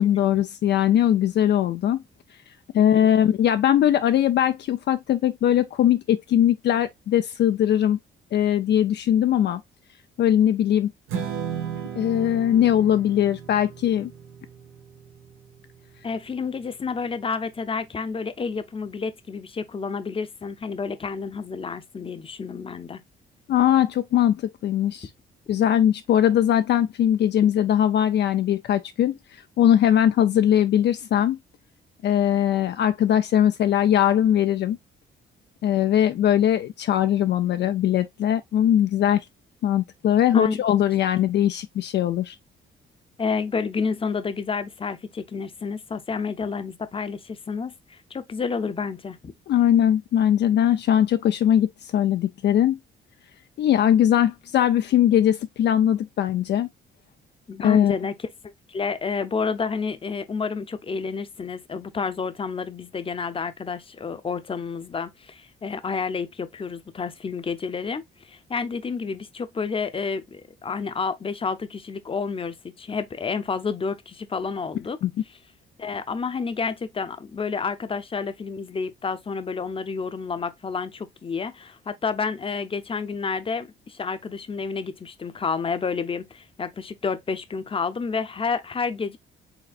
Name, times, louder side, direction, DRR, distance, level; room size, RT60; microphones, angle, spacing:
voice 1, 0.0-2.0 2.7-8.0 8.3-9.6 10.2-10.9 12.0-14.1 23.5-25.1 25.5-29.1 29.6-31.4 32.0-34.8 35.6-39.2 39.6-42.3 49.5-52.8 53.6-56.7 57.6-58.0 75.0-75.1, left 10 dB, 60° left, 0.4 m, -20 dB
Strum, 11.1-17.4, right 8 dB, 90° right, 1.4 m, -36 dB
voice 2, 16.0-23.0 40.3-40.6 43.2-49.3 57.5-58.1 58.7-75.0 75.8-89.2, left 5 dB, 25° left, 0.7 m, -30 dB
5.0 x 3.2 x 2.4 m
cardioid pair, 90°, 20 cm